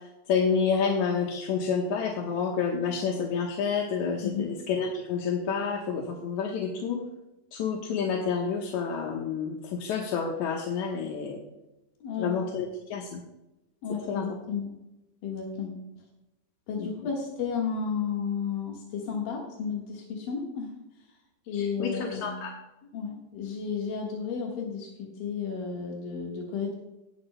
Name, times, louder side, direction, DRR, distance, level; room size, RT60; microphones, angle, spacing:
voice 1, 0.3-7.0 7.5-11.4 12.2-13.2 14.1-14.3 16.8-16.9 21.5-22.5, left 6 dB, 65° left, 0 dB, 2.3 m, -29 dB
voice 2, 12.0-12.3 13.8-14.7 15.2-15.8 16.7-20.7 21.5-22.4 22.9-26.7, left 6 dB, 90° left, -1 dB, 3.3 m, -32 dB
18.5 x 9.7 x 2.2 m, 0.95 s
omnidirectional pair, 3.9 m